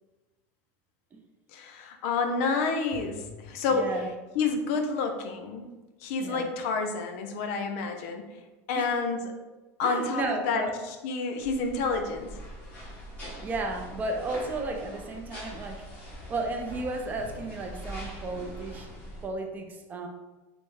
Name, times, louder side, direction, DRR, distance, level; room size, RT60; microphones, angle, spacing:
voice 1, 1.5-3.9 4.4-5.7 6.0-8.3 8.7-9.3 9.8-12.4, left 4 dB, 65° left, 5 dB, 0.4 m, -29 dB
voice 2, 3.7-4.1 6.2-6.5 8.7-8.9 9.8-10.7 13.4-15.8 16.3-18.9 19.2-20.1, right 2 dB, 20° right, 4 dB, 0.3 m, -33 dB
sound 1, 11.4-19.3, equal, 20° left, 1.1 m, -43 dB
3.3 x 2.0 x 3.2 m, 1.2 s
supercardioid pair, 145°, 8 cm